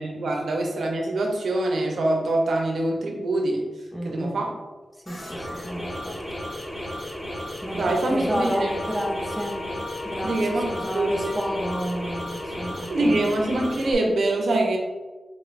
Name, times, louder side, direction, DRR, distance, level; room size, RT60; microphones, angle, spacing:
voice 1, 0.0-3.6 4.0-4.5 7.7-8.7 10.2-10.7 10.9-11.3 12.9-14.8, right 2 dB, 85° right, 1 dB, 0.6 m, -24 dB
voice 2, 3.9-4.4 5.1-6.2 7.6-9.6 10.0-13.3, equal, ahead, 0 dB, 0.5 m, -31 dB
sound 1, 5.1-13.9, equal, 25° left, 1.3 m, -34 dB
Wind instrument woodwind instrument, 8.5-12.9, left 3 dB, 75° left, 1.1 m, -38 dB
3.9 x 2.5 x 3.2 m, 1.2 s
wide cardioid pair, 160°, 0 cm